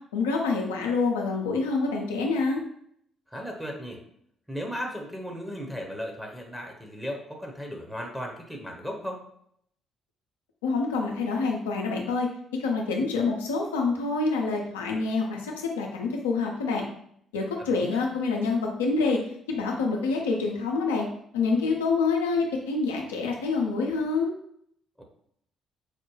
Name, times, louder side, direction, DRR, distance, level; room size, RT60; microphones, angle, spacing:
voice 1, 0.1-2.6 10.6-12.3 12.6-16.8 17.3-19.2 19.5-21.1 21.3-24.3, left 4 dB, 85° left, 0 dB, 0.6 m, -26 dB
voice 2, 3.3-4.0 4.5-9.2 17.6-18.0 25.0-25.1, equal, ahead, 1 dB, 0.8 m, -36 dB
4.8 x 2.2 x 3.1 m, 0.70 s
hypercardioid pair, 45°, 0 cm